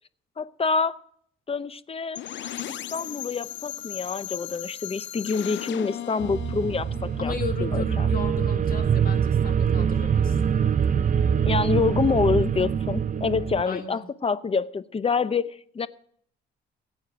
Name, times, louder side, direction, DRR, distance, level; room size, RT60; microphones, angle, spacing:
voice 1, 0.4-1.0 1.5-2.2 2.6-7.3 7.6-8.1 11.4-15.9, left 5 dB, 30° left, 16 dB, 0.7 m, -27 dB
sound 1, 2.1-7.9, left 12 dB, 70° left, 0.6 m, -37 dB
sound 2, 6.2-13.6, right 7 dB, 40° right, 0.7 m, -24 dB
voice 2, 7.2-10.4 13.7-14.0, left 5 dB, 45° left, 6 dB, 2.1 m, -35 dB
16.0 x 8.5 x 6.1 m, 0.64 s
cardioid pair, 90°, 20 cm